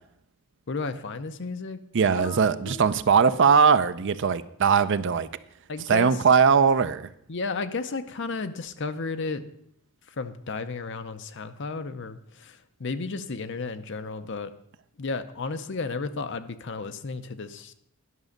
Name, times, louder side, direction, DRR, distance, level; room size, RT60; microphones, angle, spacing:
voice 1, 0.7-1.8 2.1-2.9 5.7-6.2 7.3-9.5 10.1-14.5 15.0-17.7, left 4 dB, 55° left, 0.7 m, -33 dB
voice 2, 1.9-5.3 5.9-7.1, right 6 dB, 55° right, 0.5 m, -20 dB
11.0 x 6.1 x 6.5 m
head